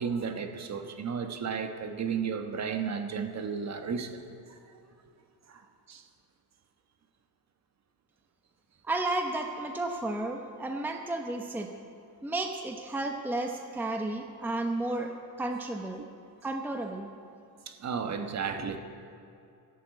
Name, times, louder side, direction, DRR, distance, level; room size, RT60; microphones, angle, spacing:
voice 1, 0.0-4.2 5.5-5.6 5.9-6.0 17.7-18.8, right 6 dB, 35° right, 6 dB, 1.3 m, -33 dB
voice 2, 8.8-11.7 12.2-15.1 15.4-16.1 16.4-17.1, right 2 dB, 5° right, 3 dB, 0.8 m, -32 dB
13.0 x 11.5 x 8.3 m, 2.5 s
cardioid pair, 130°, 44 cm